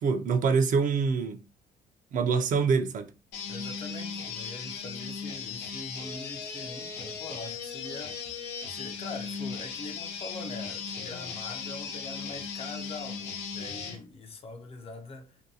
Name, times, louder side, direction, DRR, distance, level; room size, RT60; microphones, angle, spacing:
voice 1, 0.0-1.4 2.1-3.1, right 5 dB, 50° right, 0.5 m, -25 dB
sound 1, 3.3-14.0, left 5 dB, 90° left, 0.6 m, -37 dB
voice 2, 3.5-8.2 8.7-15.4, left 3 dB, 35° left, 0.5 m, -43 dB
2.6 x 2.2 x 2.7 m
cardioid pair, 110°, 17 cm